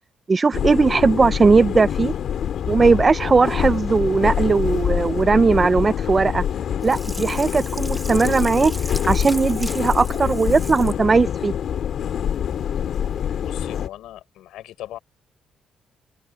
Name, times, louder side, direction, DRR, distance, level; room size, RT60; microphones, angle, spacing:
voice 1, 0.3-2.1 2.7-6.4 6.8-8.7 9.1-11.5, right 4 dB, 30° right, 0.8 m, -18 dB
sound 1, 0.5-13.9, left 9 dB, 65° left, 2.6 m, -25 dB
Sink (filling or washing), 6.8-11.0 11.5-11.6, right 1 dB, 5° right, 2.3 m, -37 dB
voice 2, 13.4-15.0, left 13 dB, 85° left, 6.8 m, -38 dB
cardioid pair, 90°, 0 cm